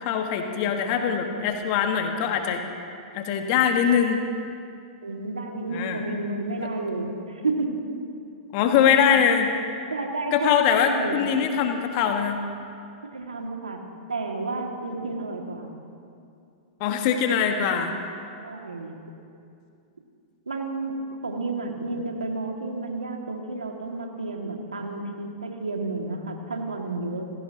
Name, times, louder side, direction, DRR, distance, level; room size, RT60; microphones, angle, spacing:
voice 1, 0.0-2.6 3.1-4.2 5.7-6.0 6.6-6.7 8.5-9.5 10.3-12.4 16.8-17.9, left 8 dB, 45° left, 4 dB, 1.6 m, -22 dB
voice 2, 5.0-7.8 9.9-11.2 13.1-13.8 14.1-15.7 18.4-18.9 20.5-27.3, right 2 dB, 85° right, 1 dB, 2.3 m, -31 dB
30.0 x 16.5 x 3.0 m, 2.5 s
figure-of-eight pair, 105°, 4 cm